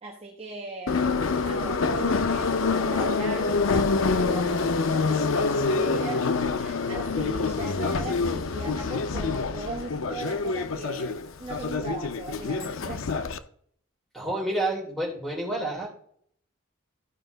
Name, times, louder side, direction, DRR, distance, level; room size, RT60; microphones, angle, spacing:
voice 1, 0.0-1.0 1.4-13.1, right 3 dB, 30° right, -1 dB, 1.1 m, -38 dB
Subway metro underground, 0.9-13.4, left 4 dB, 75° left, 0.6 m, -26 dB
voice 2, 14.1-15.9, right 1 dB, ahead, -3 dB, 3.1 m, -29 dB
14.0 x 4.9 x 3.9 m, 0.63 s
head